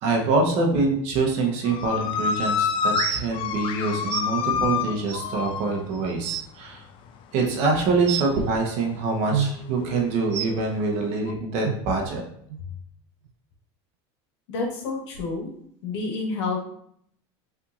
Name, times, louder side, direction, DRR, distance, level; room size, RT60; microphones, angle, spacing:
voice 1, 0.0-6.8 7.3-12.2, right 3 dB, 50° right, 1 dB, 1.1 m, -25 dB
sound 1, 1.6-6.5 6.7-7.2 7.5-8.4 9.0-11.3, left 6 dB, 35° left, 0.4 m, -28 dB
sound 2, 1.8-1.9 2.9-3.2 4.1-4.2 5.1-5.2 5.8-5.9 6.1-6.4 8.1-8.3 9.3-9.5 10.3-10.5 11.6-11.7 12.5-12.6 13.3-13.4, right 10 dB, 85° right, 0.5 m, -27 dB
voice 2, 14.5-15.5 15.8-16.6, left 3 dB, 85° left, 0 dB, 1.6 m, -29 dB
5.7 x 3.5 x 2.6 m, 0.67 s
supercardioid pair, 150°, 14 cm